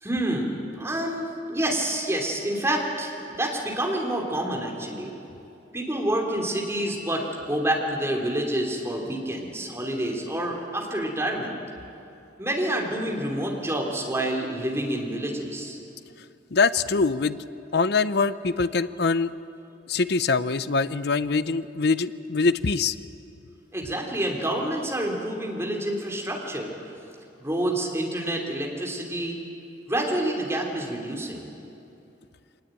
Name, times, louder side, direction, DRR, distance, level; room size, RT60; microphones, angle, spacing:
voice 1, 0.0-5.1 5.7-11.6 12.4-15.8 23.7-26.7 27.4-29.4 29.9-31.5, right 1 dB, 15° right, 0 dB, 3.2 m, -28 dB
voice 2, 16.5-17.4 17.7-19.3 19.9-22.9, left 4 dB, 60° left, 14 dB, 0.7 m, -23 dB
23.5 x 19.5 x 9.1 m, 2.7 s
head